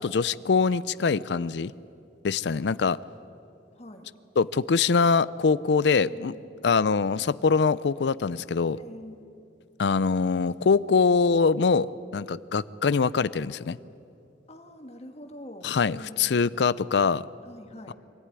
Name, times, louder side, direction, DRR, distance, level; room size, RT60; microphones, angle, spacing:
voice 1, 0.0-1.7 2.2-3.0 4.4-6.3 6.6-8.8 9.8-11.9 12.1-13.8 15.6-17.2 17.9-18.0, left 5 dB, 70° left, 18 dB, 0.5 m, -23 dB
voice 2, 3.7-4.1 6.0-7.2 8.8-9.4 14.5-16.5 17.4-17.9, left 1 dB, 35° left, 4 dB, 1.9 m, -45 dB
24.0 x 14.5 x 9.7 m, 2.7 s
head